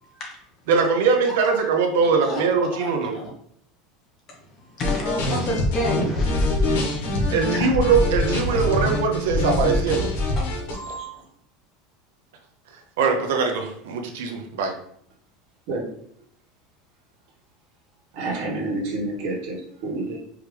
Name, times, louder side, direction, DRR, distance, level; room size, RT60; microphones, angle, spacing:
voice 1, 0.0-0.4 1.2-1.3 2.2-2.4 2.8-3.3 4.3-7.7 10.4-11.2, equal, 30° left, -1 dB, 1.1 m, -31 dB
voice 2, 0.7-3.1 7.3-10.0 10.9-11.0 13.0-14.7, right 5 dB, 90° right, 3 dB, 0.8 m, -22 dB
sound 1, 4.8-10.7, left 2 dB, 80° left, 1.6 m, -24 dB
voice 3, 18.1-20.2, right 2 dB, 50° right, -2 dB, 1.5 m, -28 dB
4.8 x 3.1 x 3.3 m, 0.68 s
supercardioid pair, 175°, 0 cm